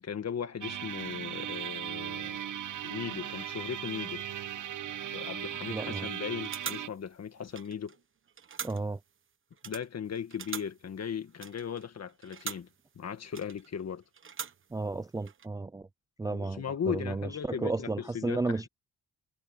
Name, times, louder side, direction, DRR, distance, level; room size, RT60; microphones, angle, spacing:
voice 1, 0.0-2.4 2.8-4.2 5.1-8.0 9.6-12.7 13.0-14.0 16.2-18.7, left 7 dB, 45° left, 1.8 m, -37 dB
sound 1, 0.6-6.9, right 10 dB, 60° right, 1.0 m, -38 dB
voice 2, 5.7-6.1 8.6-9.0 14.7-15.9 16.2-18.7, right 3 dB, 10° right, 0.3 m, -33 dB
sound 2, 5.9-6.1 6.4-8.0 8.3-9.1 9.5-12.8 13.3-13.8 14.1-14.9 15.2-15.5, right 6 dB, 35° right, 1.1 m, -43 dB
wide cardioid pair, 155°, 35 cm